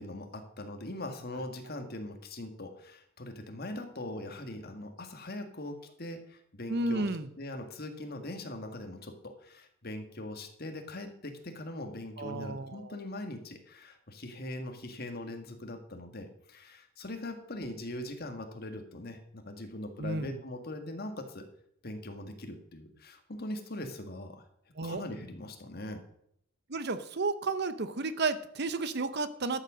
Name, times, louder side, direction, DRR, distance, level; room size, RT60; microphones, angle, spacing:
voice 1, 0.0-7.1 7.4-21.5 21.8-24.5 24.8-26.0, left 1 dB, 45° left, 5 dB, 1.8 m, -41 dB
voice 2, 6.7-7.3 12.2-13.0 20.0-20.4 24.8-25.0 26.7-29.6, right 3 dB, 50° right, 13 dB, 0.8 m, -32 dB
13.0 x 7.4 x 6.3 m, 0.71 s
head